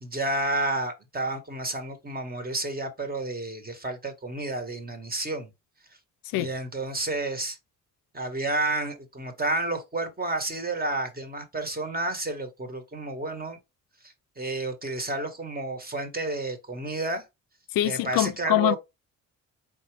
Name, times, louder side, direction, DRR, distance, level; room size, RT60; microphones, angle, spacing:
voice 1, 0.0-5.5 6.3-7.6 8.1-13.6 14.0-17.2 17.8-18.8, right 2 dB, 25° right, 1.6 m, -31 dB
voice 2, 17.7-18.8, left 14 dB, 75° left, 0.5 m, -24 dB
4.1 x 3.6 x 3.4 m
supercardioid pair, 70°, 34 cm